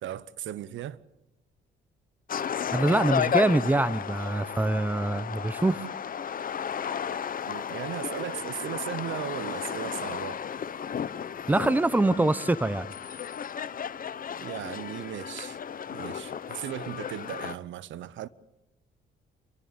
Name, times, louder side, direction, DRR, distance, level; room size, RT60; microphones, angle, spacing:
voice 1, 0.0-1.0 7.5-10.4 14.4-15.6 15.9-18.3, right 11 dB, 75° right, 0.8 m, -37 dB
sound 1, 2.3-17.6, left 8 dB, 45° left, 0.9 m, -33 dB
voice 2, 2.7-5.9 11.5-12.9, right 2 dB, 10° right, 0.8 m, -24 dB
29.0 x 12.5 x 8.7 m
cardioid pair, 90°, 20 cm